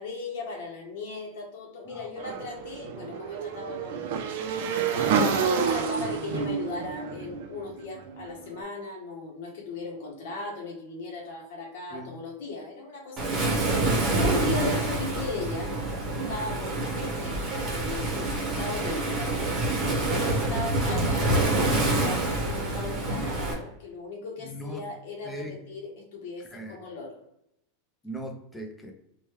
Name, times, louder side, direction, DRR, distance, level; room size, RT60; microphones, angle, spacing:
voice 1, 0.0-13.4 13.7-15.7 16.1-17.4 17.7-19.5 19.9-21.3 21.8-27.2, left 3 dB, 65° left, -1 dB, 0.9 m, -37 dB
voice 2, 1.8-2.2 4.9-5.2 11.9-12.1 14.2-14.4 18.1-18.4 20.1-20.4 24.4-24.8 25.2-25.6 26.5-26.8 28.0-28.9, equal, 5° left, 3 dB, 0.4 m, -39 dB
Motorcycle / Engine, 2.2-8.3, right 7 dB, 60° right, 0.4 m, -29 dB
Waves surf, 13.2-23.5, right 2 dB, 20° right, 0.9 m, -27 dB
3.1 x 2.2 x 3.0 m, 0.80 s
supercardioid pair, 155°, 0 cm